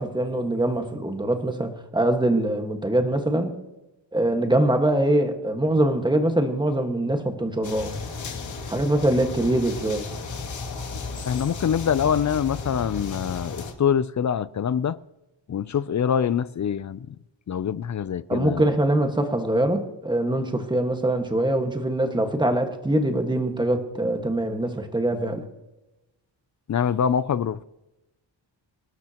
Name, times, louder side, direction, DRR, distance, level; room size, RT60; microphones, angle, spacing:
voice 1, 0.0-3.5 4.1-7.9 8.7-10.1 18.3-25.4, right 1 dB, 10° right, 1.6 m, -23 dB
sound 1, 7.6-13.7, left 4 dB, 90° left, 2.6 m, -34 dB
voice 2, 11.3-15.0 15.5-17.1 17.5-18.6 26.7-27.6, left 8 dB, 40° left, 0.4 m, -24 dB
26.0 x 12.0 x 3.0 m
wide cardioid pair, 150°, 45 cm